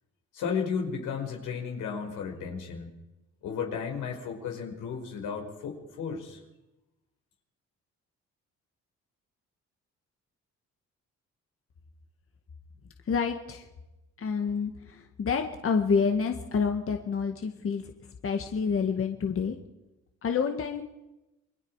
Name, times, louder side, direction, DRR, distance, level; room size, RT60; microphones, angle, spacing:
voice 1, 0.3-2.9 3.4-6.4, left 6 dB, 85° left, 1 dB, 5.4 m, -34 dB
voice 2, 13.1-13.7 14.2-17.9 18.2-19.6 20.2-20.8, left 5 dB, 45° left, 5 dB, 1.9 m, -28 dB
28.5 x 22.0 x 4.9 m, 0.99 s
cardioid pair, 90°, 30 cm